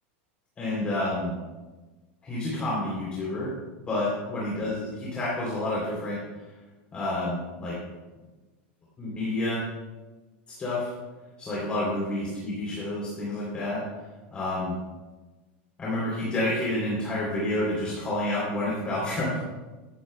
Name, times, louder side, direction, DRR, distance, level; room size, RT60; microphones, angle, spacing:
voice 1, 0.6-1.4 2.2-3.5 3.9-6.2 6.9-7.8 9.0-9.6 10.6-10.9 11.4-13.8 14.3-14.8 15.8-19.4, left 1 dB, 15° left, -6 dB, 3.3 m, -29 dB
16.5 x 13.0 x 2.3 m, 1.2 s
supercardioid pair, 165°, 6 cm